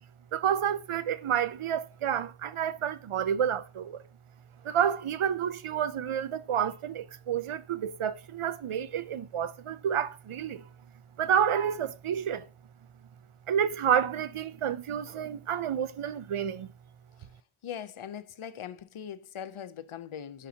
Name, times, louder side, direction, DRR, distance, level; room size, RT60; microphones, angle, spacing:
voice 1, 0.3-4.0 4.6-10.7 11.2-12.5 13.5-16.7, right 8 dB, 85° right, 0.6 m, -29 dB
voice 2, 17.6-20.5, left 9 dB, 90° left, 0.6 m, -41 dB
11.5 x 5.1 x 2.8 m
wide cardioid pair, 45°, 48 cm